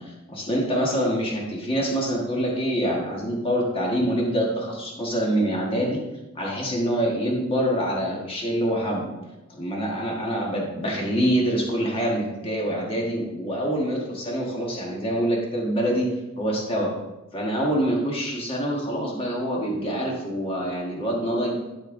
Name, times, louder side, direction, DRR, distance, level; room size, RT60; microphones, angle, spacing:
voice 1, 0.0-6.0 6.3-9.1 9.6-16.1 16.4-16.9 17.3-21.7, equal, 25° left, -2 dB, 1.5 m, -25 dB
12.5 x 4.4 x 3.8 m, 1.0 s
head